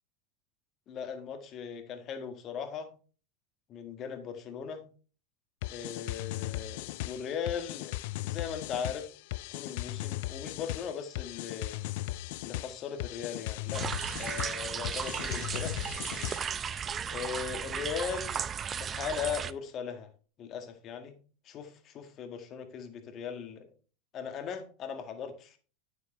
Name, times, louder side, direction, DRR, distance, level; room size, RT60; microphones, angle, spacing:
voice 1, 0.9-2.9 3.7-4.8 5.7-8.0 8.2-9.1 9.5-11.8 12.4-13.9 14.2-15.8 17.1-20.1 20.4-21.2 21.5-23.7 24.1-25.6, left 7 dB, 45° left, 1.8 m, -38 dB
sound 1, 5.6-16.7, left 17 dB, 70° left, 0.3 m, -37 dB
sound 2, 13.7-19.5, right 7 dB, 30° right, 0.5 m, -35 dB
9.4 x 7.1 x 3.3 m
hypercardioid pair, 100°, 0 cm